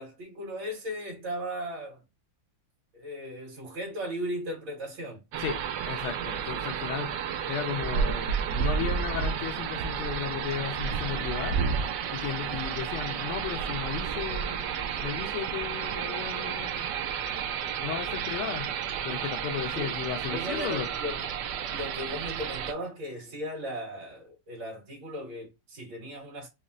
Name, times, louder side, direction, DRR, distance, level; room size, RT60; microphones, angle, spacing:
voice 1, 0.0-2.0 2.9-5.2 19.7-19.9 20.3-21.2 21.7-26.5, equal, 60° right, 2.5 m, -36 dB
sound 1, 5.3-22.7, right 7 dB, 75° right, 0.9 m, -31 dB
voice 2, 5.4-7.2 7.5-11.6 12.1-16.9 17.8-18.7 19.0-20.9, left 9 dB, 80° left, 1.5 m, -35 dB
5.2 x 2.1 x 2.4 m
omnidirectional pair, 2.4 m